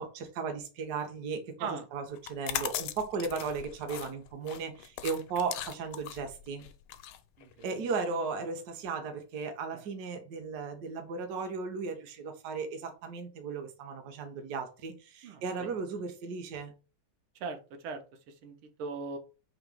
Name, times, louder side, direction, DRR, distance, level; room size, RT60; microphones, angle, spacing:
voice 1, 0.0-6.7 7.6-16.7, right 5 dB, 60° right, 1.1 m, -36 dB
sound 1, 2.2-7.9, left 11 dB, 85° left, 1.4 m, -39 dB
voice 2, 7.4-7.8 9.7-9.8 15.2-15.7 17.4-19.2, right 4 dB, 85° right, 1.6 m, -40 dB
3.9 x 2.9 x 4.7 m
omnidirectional pair, 2.3 m